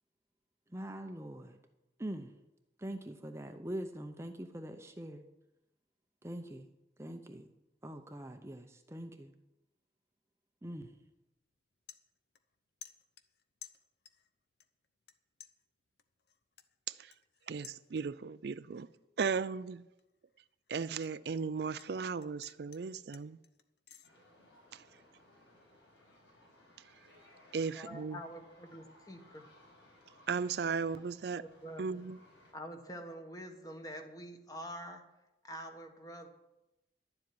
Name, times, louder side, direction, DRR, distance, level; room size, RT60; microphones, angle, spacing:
voice 1, 0.7-1.6 2.0-2.3 2.8-5.2 6.2-6.7 7.0-7.5 7.8-9.3 10.6-10.9, right 1 dB, 15° right, 0.7 m, -43 dB
sound 1, 11.0-11.2 11.5-12.6 12.8-14.3 14.6-15.1 15.4-18.3 18.7-19.0 19.4-21.9 22.2-24.1, left 9 dB, 65° left, 0.8 m, -56 dB
voice 2, 17.5-18.9 19.2-19.8 20.7-23.4 24.7-24.8 27.5-28.2 30.3-31.4 31.8-32.2, right 5 dB, 65° right, 0.4 m, -36 dB
Field Recording Backyard New York, 24.0-32.5, left 1 dB, 85° left, 6.0 m, -62 dB
voice 3, 27.7-29.5 31.4-32.0 32.5-35.0 35.4-36.3, equal, 20° left, 1.4 m, -46 dB
11.5 x 7.6 x 9.5 m
head